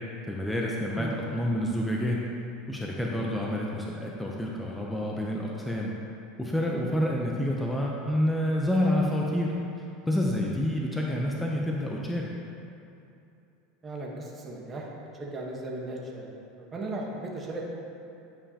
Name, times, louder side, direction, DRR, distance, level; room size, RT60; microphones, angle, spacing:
voice 1, 0.3-2.2 2.7-5.9 6.4-9.6 10.1-12.3, left 1 dB, 5° left, -2 dB, 0.6 m, -28 dB
voice 2, 13.8-14.9 15.2-16.2 16.6-17.6, right 2 dB, 25° right, -2 dB, 1.1 m, -36 dB
9.6 x 5.4 x 2.8 m, 2.7 s
supercardioid pair, 125°, 0 cm